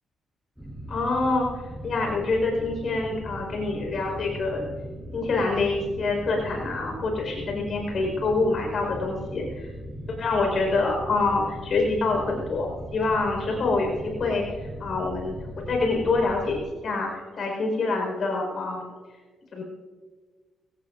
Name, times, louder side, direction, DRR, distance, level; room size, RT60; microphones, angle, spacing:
sound 1, 0.6-16.6, equal, ahead, 3.3 m, -39 dB
voice 1, 0.9-1.5 1.8-4.7 5.1-9.7 10.2-15.3 15.7-18.9 19.5-19.6, left 3 dB, 55° left, 1 dB, 5.0 m, -26 dB
23.0 x 18.0 x 2.7 m, 1.5 s
cardioid pair, 105°, 0 cm